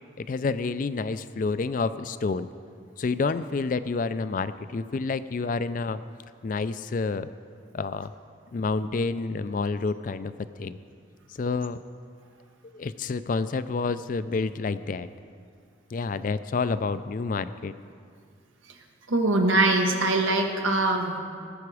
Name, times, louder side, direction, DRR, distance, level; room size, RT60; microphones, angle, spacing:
voice 1, 0.2-2.5 3.0-6.0 6.4-7.3 7.7-8.1 8.5-10.8 11.3-11.8 12.7-15.1 15.9-17.7, left 4 dB, 45° left, 13 dB, 0.3 m, -29 dB
voice 2, 19.1-21.2, right 2 dB, 85° right, 3 dB, 1.3 m, -22 dB
18.0 x 7.0 x 4.9 m, 2.3 s
head